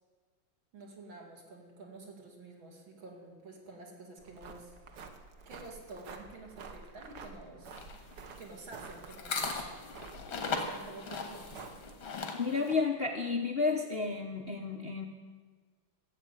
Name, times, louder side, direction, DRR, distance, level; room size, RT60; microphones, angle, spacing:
voice 1, 0.7-4.7 5.5-7.9 8.4-9.5 10.3-11.6, right 2 dB, 70° right, 1 dB, 3.0 m, -49 dB
sound 1, 4.2-12.1, right 4 dB, 55° right, 1.5 m, -50 dB
sound 2, 7.7-12.7, left 4 dB, 85° left, 2.4 m, -38 dB
voice 2, 12.3-15.1, left 4 dB, 50° left, 3 dB, 0.7 m, -31 dB
13.0 x 7.7 x 8.9 m, 1.4 s
omnidirectional pair, 2.2 m